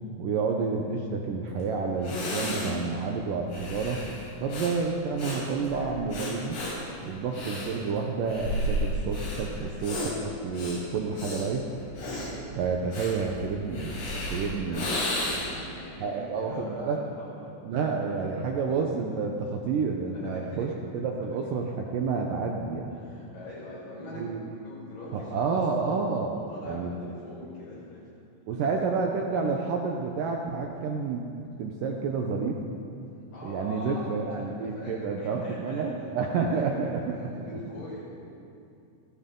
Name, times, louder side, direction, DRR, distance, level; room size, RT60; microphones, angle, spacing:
voice 1, 0.2-4.0 4.4-6.6 7.0-11.7 12.6-14.9 16.0-17.0 17.6-23.0 24.1-24.4 25.1-26.4 26.7-26.9 28.5-31.3 31.6-32.6 33.4-37.5, right 4 dB, 80° right, 1 dB, 1.9 m, -29 dB
Breathing, 1.6-1.7 2.0-15.7, left 1 dB, 75° left, 7.2 m, -34 dB
voice 2, 14.3-17.5 17.8-18.2 20.1-20.8 21.2-21.4 22.9-26.0 26.3-28.1 29.4-29.5 33.1-38.1, left 1 dB, 50° left, -6 dB, 6.6 m, -43 dB
29.0 x 13.0 x 3.8 m, 2.5 s
omnidirectional pair, 5.1 m